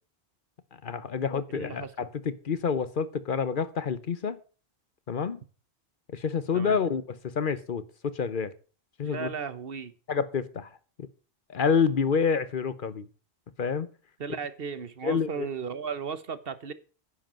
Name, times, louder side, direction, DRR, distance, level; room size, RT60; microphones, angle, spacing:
voice 1, 0.8-4.4 5.1-5.4 6.1-8.5 9.0-9.3 10.1-10.7 11.0-11.1 11.5-13.1 13.6-13.9 15.0-15.5, left 6 dB, 55° left, 0.9 m, -28 dB
voice 2, 1.5-1.9 6.5-6.8 9.0-9.9 14.2-16.7, right 6 dB, 60° right, 1.2 m, -35 dB
10.0 x 7.8 x 7.4 m
omnidirectional pair, 1.1 m